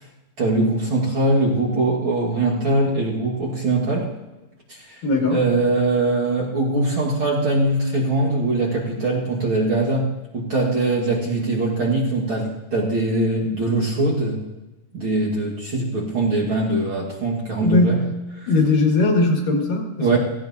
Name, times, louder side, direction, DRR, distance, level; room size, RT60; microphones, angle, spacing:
voice 1, 0.4-4.1 4.9-5.0 5.3-14.4 14.9-18.0 20.0-20.2, right 2 dB, 45° right, -4 dB, 2.0 m, -22 dB
voice 2, 5.0-5.4 17.6-18.1 18.5-20.2, left 2 dB, 80° left, 1 dB, 3.4 m, -19 dB
16.5 x 15.5 x 2.7 m, 1.0 s
omnidirectional pair, 3.8 m